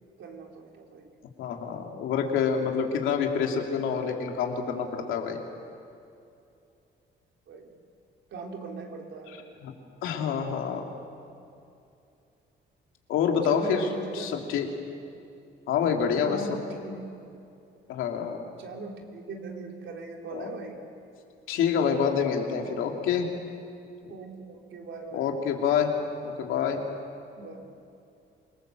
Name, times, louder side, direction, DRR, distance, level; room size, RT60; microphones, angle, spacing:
voice 1, 0.2-1.1 7.5-7.7 8.3-9.6 13.4-14.3 16.1-17.0 18.6-20.8 22.6-22.8 24.1-25.4 27.4-27.7, right 3 dB, 70° right, 1 dB, 4.0 m, -40 dB
voice 2, 1.4-5.4 9.6-9.7 10.0-10.8 13.1-13.9 14.1-14.7 15.7-16.4 17.9-18.4 20.3-20.5 21.5-23.3 25.1-25.9 26.2-26.8, left 7 dB, 90° left, 2 dB, 2.9 m, -27 dB
27.5 x 19.5 x 7.8 m, 2.6 s
cardioid pair, 90°, 20 cm